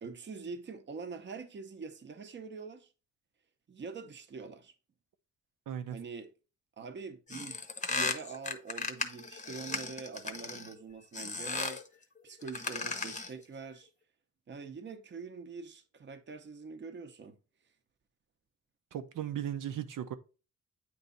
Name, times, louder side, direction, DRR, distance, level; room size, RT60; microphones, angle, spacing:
voice 1, 0.0-2.9 3.7-4.7 5.9-6.3 6.8-7.6 7.9-11.8 12.2-13.9 14.5-17.4, right 5 dB, 35° right, 0.8 m, -44 dB
voice 2, 5.7-6.0 18.9-20.1, right 10 dB, 80° right, 0.7 m, -37 dB
sound 1, 7.3-10.7 11.1-11.9 12.4-13.4, left 4 dB, 25° left, 0.8 m, -36 dB
9.1 x 3.1 x 3.9 m
wide cardioid pair, 155°, 31 cm